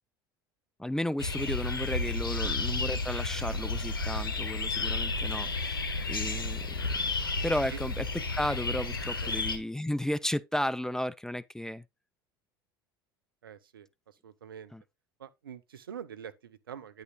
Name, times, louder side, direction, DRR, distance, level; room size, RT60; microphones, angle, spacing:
voice 1, 0.8-5.8 6.1-7.1 7.4-8.1 8.4-11.8 14.7-14.8, left 1 dB, 5° left, 0.4 m, -33 dB
sound 1, 1.2-9.6, left 3 dB, 85° left, 1.1 m, -32 dB
voice 2, 13.4-14.7 15.2-17.0, right 8 dB, 80° right, 0.8 m, -45 dB
9.4 x 9.2 x 2.2 m
figure-of-eight pair, 70°, 12 cm